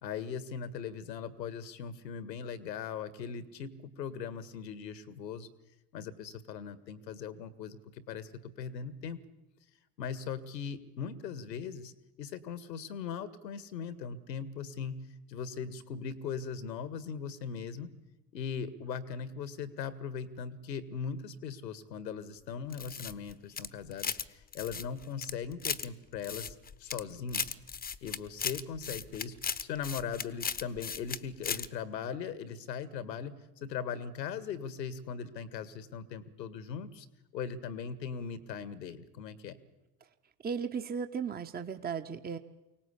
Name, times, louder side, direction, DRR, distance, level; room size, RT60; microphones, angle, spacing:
voice 1, 0.0-3.7 4.0-5.5 5.9-9.2 10.0-11.9 12.2-15.0 15.3-17.9 18.3-27.6 28.0-37.1 37.3-39.6, left 6 dB, 80° left, 14 dB, 1.8 m, -39 dB
sound 1, 22.7-24.3 24.5-25.9 26.2-27.0 27.3-31.2 31.4-31.7, left 6 dB, 20° left, 1.0 m, -36 dB
voice 2, 40.4-42.4, right 6 dB, 20° right, 8 dB, 1.2 m, -35 dB
24.0 x 18.0 x 8.4 m, 0.99 s
hypercardioid pair, 75°, 50 cm